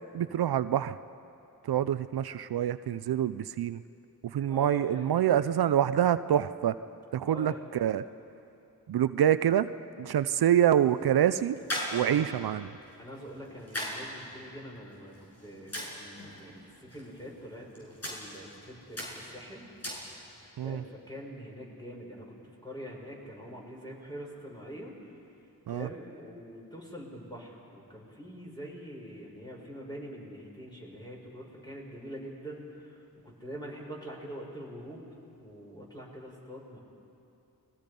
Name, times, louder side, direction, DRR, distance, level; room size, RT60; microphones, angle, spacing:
voice 1, 0.1-1.0 1.6-3.8 4.3-6.8 7.1-8.0 8.9-9.7 10.0-11.6 11.9-12.7 20.6-20.8 25.7-25.9, right 10 dB, 75° right, 13 dB, 0.6 m, -26 dB
voice 2, 4.5-5.3 7.2-7.6 11.9-12.3 13.0-19.6 20.6-22.4 22.6-24.9 25.7-35.0 35.4-36.8, equal, 10° left, -2 dB, 6.8 m, -44 dB
sound 1, 10.4-20.5, equal, 40° left, 7.3 m, -42 dB
30.0 x 21.5 x 5.3 m, 2.7 s
cardioid pair, 55°, 38 cm